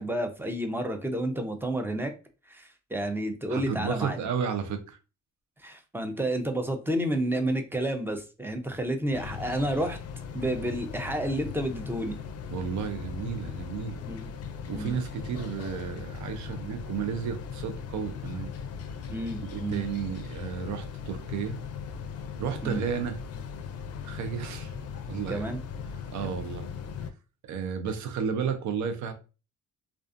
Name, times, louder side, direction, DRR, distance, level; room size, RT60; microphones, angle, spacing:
voice 1, 0.0-2.1 2.5-4.2 5.6-10.0 10.3-12.2 14.0-14.3 14.7-14.9 19.1-19.8 22.6-22.8 25.3-25.6 26.2-26.4, right 1 dB, 5° right, 0.5 m, -30 dB
voice 2, 3.5-5.0 12.5-14.0 14.7-18.5 19.4-21.6 22.4-23.2 24.0-24.7 25.1-25.4 26.1-26.7 27.4-29.1, right 7 dB, 70° right, 0.6 m, -32 dB
sound 1, 9.1-27.1, left 6 dB, 55° left, 0.4 m, -39 dB
2.4 x 2.4 x 2.4 m
cardioid pair, 90°, 30 cm